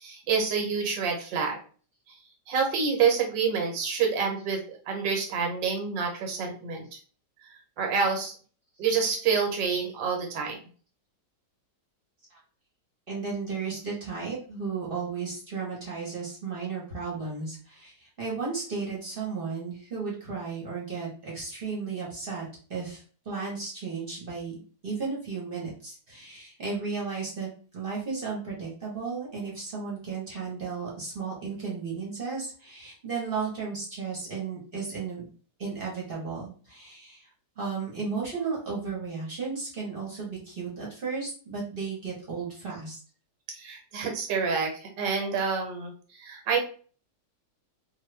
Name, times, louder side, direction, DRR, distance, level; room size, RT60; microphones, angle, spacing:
voice 1, 0.0-1.6 2.5-6.9 7.8-8.3 8.8-10.6 43.5-45.9 46.2-46.6, right 5 dB, 80° right, 2 dB, 1.5 m, -27 dB
voice 2, 13.1-22.4 22.7-35.3 35.6-37.3 37.6-43.0, right 5 dB, 40° right, -4 dB, 0.9 m, -34 dB
2.9 x 2.2 x 3.2 m, 0.41 s
omnidirectional pair, 1.9 m